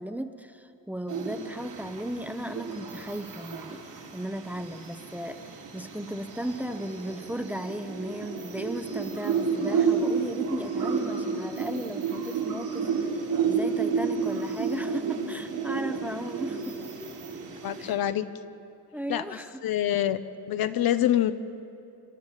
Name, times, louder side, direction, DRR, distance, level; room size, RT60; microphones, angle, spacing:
voice 1, 0.0-13.1 13.4-16.8 17.8-18.0 18.9-19.9, right 1 dB, 5° right, 8 dB, 0.8 m, -36 dB
sound 1, 1.1-17.9, right 5 dB, 85° right, 6.3 m, -31 dB
voice 2, 17.6-18.2 19.1-19.2 19.6-20.2 20.5-21.3, left 12 dB, 70° left, 11 dB, 1.0 m, -25 dB
28.5 x 12.5 x 9.9 m, 2.6 s
cardioid pair, 140°, 37 cm